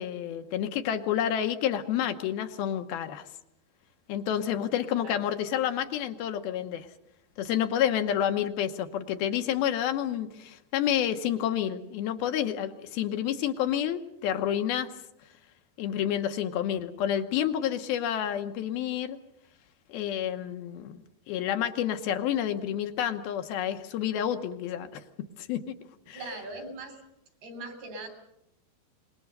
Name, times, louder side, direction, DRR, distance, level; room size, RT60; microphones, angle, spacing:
voice 1, 0.0-3.3 4.1-6.9 7.4-14.9 15.8-19.2 19.9-21.0 21.3-25.0 25.4-25.8 26.1-26.2, left 10 dB, 75° left, 7 dB, 2.8 m, -29 dB
voice 2, 26.1-27.0 27.4-28.1, right 2 dB, 70° right, 7 dB, 5.5 m, -40 dB
25.5 x 21.5 x 6.6 m, 0.81 s
omnidirectional pair, 4.6 m